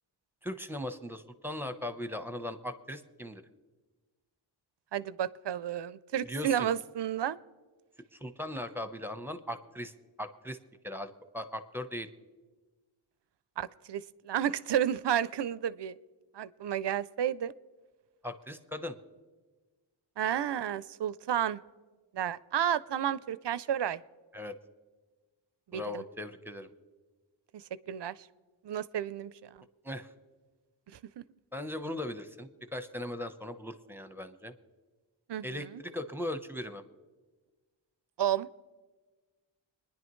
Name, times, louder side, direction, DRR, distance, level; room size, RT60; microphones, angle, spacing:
voice 1, 0.4-3.4 6.3-6.7 8.1-9.9 10.2-10.6 10.8-12.1 18.2-19.0 24.3-24.5 25.7-26.7 29.8-30.1 31.5-34.5 35.4-36.8, left 1 dB, 5° right, 9 dB, 0.9 m, -38 dB
voice 2, 4.9-7.4 13.6-16.0 16.3-17.5 20.2-21.6 22.1-24.0 25.7-26.0 27.5-28.1 28.6-29.5 31.2-31.3 35.3-35.8 38.2-38.5, right 10 dB, 60° right, 18 dB, 0.5 m, -31 dB
25.5 x 10.5 x 3.1 m, 1.3 s
cardioid pair, 50°, 47 cm